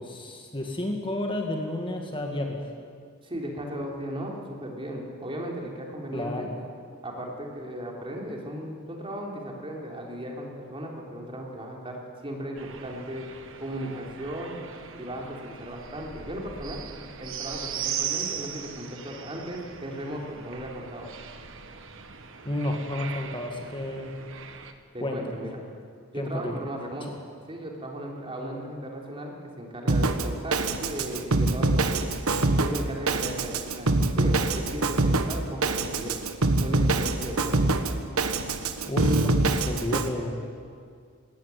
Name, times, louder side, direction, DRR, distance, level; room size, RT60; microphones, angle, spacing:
voice 1, 0.0-2.6 6.1-6.5 22.4-24.1 25.0-25.4 26.1-26.6 38.9-40.4, left 1 dB, 25° left, 2 dB, 1.9 m, -31 dB
voice 2, 3.2-6.5 7.0-13.3 13.6-14.6 14.9-16.8 17.2-21.1 24.9-25.5 26.1-27.2 27.5-32.1 32.6-36.2 36.6-37.7, right 1 dB, 25° right, 0 dB, 3.4 m, -36 dB
sound 1, 12.6-24.7, right 8 dB, 65° right, 1.5 m, -39 dB
Drum kit, 29.9-40.1, right 2 dB, 80° right, 1.4 m, -25 dB
20.0 x 16.5 x 9.4 m, 2.2 s
head